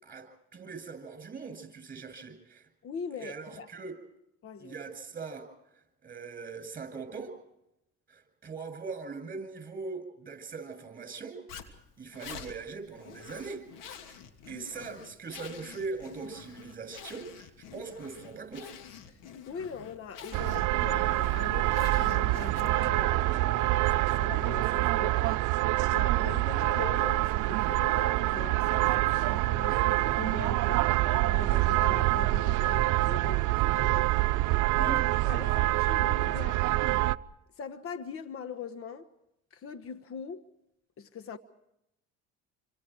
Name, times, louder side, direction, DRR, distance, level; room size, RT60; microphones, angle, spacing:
voice 1, 0.0-2.7 3.2-4.0 4.6-5.5 6.0-7.3 8.1-13.6 14.0-14.2 14.5-18.7 34.8-35.1, right 4 dB, 25° right, 7.8 m, -41 dB
voice 2, 2.8-3.7 4.4-4.8 19.1-19.2 19.5-34.3 34.8-35.0 35.2-36.6 37.6-39.1 39.5-40.4 41.0-41.4, left 6 dB, 45° left, 1.3 m, -41 dB
Zipper (clothing), 11.5-23.0, left 8 dB, 75° left, 2.8 m, -48 dB
sound 1, 20.3-37.2, right 18 dB, 70° right, 0.7 m, -26 dB
28.0 x 26.0 x 4.7 m
supercardioid pair, 100°, 32 cm